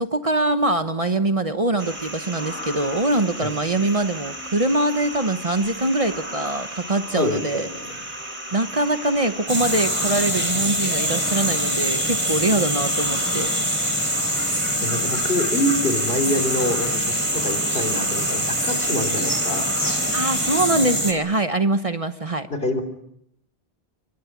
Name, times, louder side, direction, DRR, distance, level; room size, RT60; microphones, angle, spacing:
voice 1, 0.0-7.7 8.5-13.5 20.1-22.5, right 2 dB, 35° right, 9 dB, 1.0 m, -23 dB
sound 1, 1.8-20.6, equal, 50° right, 4.2 m, -35 dB
voice 2, 7.1-8.0 14.8-19.6 22.5-22.8, left 1 dB, 65° left, 5 dB, 3.6 m, -26 dB
sound 2, 9.5-21.1, equal, 10° right, 3.4 m, -24 dB
28.0 x 23.0 x 6.0 m, 0.75 s
omnidirectional pair, 1.1 m